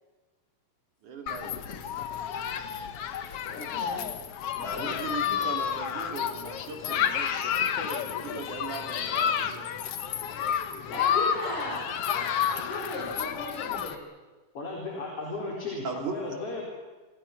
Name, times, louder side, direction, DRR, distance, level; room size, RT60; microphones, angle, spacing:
voice 1, 1.0-1.8 4.6-9.7 15.8-16.1, right 4 dB, 55° right, 3 dB, 4.1 m, -39 dB
Human group actions, 1.3-13.9, left 8 dB, 70° left, 1.4 m, -30 dB
voice 2, 3.5-4.1 10.9-14.0, left 2 dB, 90° left, -4 dB, 6.8 m, -36 dB
voice 3, 4.6-4.9 14.5-16.6, left 3 dB, 40° left, -2 dB, 4.9 m, -35 dB
28.0 x 26.0 x 6.0 m, 1.3 s
omnidirectional pair, 4.4 m